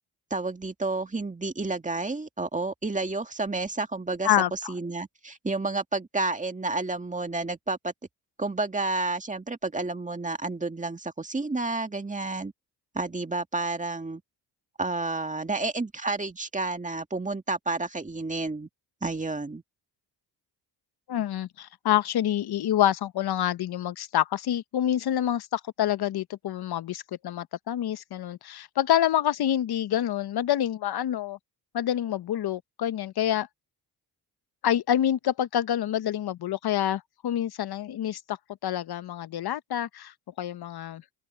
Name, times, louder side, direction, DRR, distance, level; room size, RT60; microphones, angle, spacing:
voice 1, 0.3-7.9 8.4-12.5 12.9-14.2 14.8-18.7 19.0-19.6, right 3 dB, 15° right, 2.0 m, -30 dB
voice 2, 4.2-4.7 21.1-31.4 31.7-33.5 34.6-38.4 38.6-41.0, left 11 dB, 60° left, 1.0 m, -27 dB
open air
cardioid pair, 70°, 44 cm